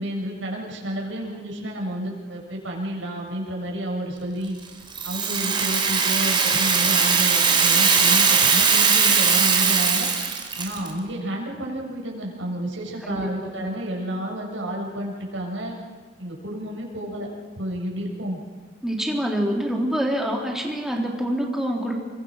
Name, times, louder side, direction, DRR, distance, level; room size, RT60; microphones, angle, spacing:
voice 1, 0.0-4.6 5.0-10.1 10.6-15.7 16.2-17.3 17.6-18.4, right 1 dB, 75° right, -1 dB, 7.2 m, -30 dB
Rattle (instrument), 4.9-10.9, right 5 dB, 25° right, 3.5 m, -20 dB
voice 2, 13.0-13.7 18.8-22.0, equal, ahead, 0 dB, 3.5 m, -26 dB
29.5 x 24.0 x 6.5 m, 1.5 s
head